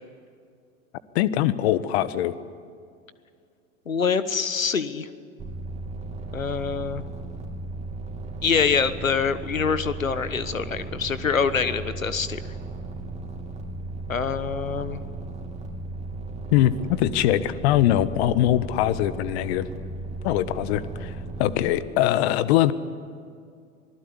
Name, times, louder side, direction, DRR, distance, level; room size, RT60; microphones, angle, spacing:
voice 1, 1.1-2.4 16.5-19.7 20.2-22.7, left 13 dB, 55° left, 15 dB, 1.4 m, -22 dB
voice 2, 3.9-5.1 6.3-7.0 8.4-12.5 14.1-15.0, left 6 dB, 90° left, 14 dB, 1.3 m, -25 dB
sound 1, 5.4-21.8, right 3 dB, 15° right, 3.4 m, -36 dB
25.5 x 20.0 x 9.8 m, 2.3 s
hypercardioid pair, 95°, 39 cm